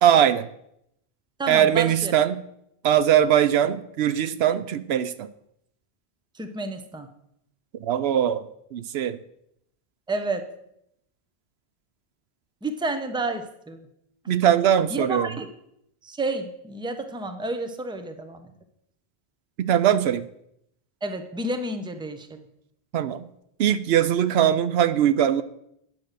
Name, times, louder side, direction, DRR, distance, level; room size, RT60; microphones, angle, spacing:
voice 1, 0.0-0.5 1.5-2.4 2.8-5.3 7.8-8.4 8.7-9.2 14.3-15.3 19.6-20.3 22.9-23.3 23.6-25.4, right 10 dB, 75° right, 13 dB, 0.8 m, -21 dB
voice 2, 1.4-2.1 6.3-7.1 10.1-10.5 12.6-13.9 14.2-14.4 14.9-15.5 16.0-18.5 21.0-22.4, right 2 dB, 5° right, 7 dB, 0.7 m, -30 dB
9.8 x 6.0 x 6.6 m, 0.76 s
omnidirectional pair, 1.1 m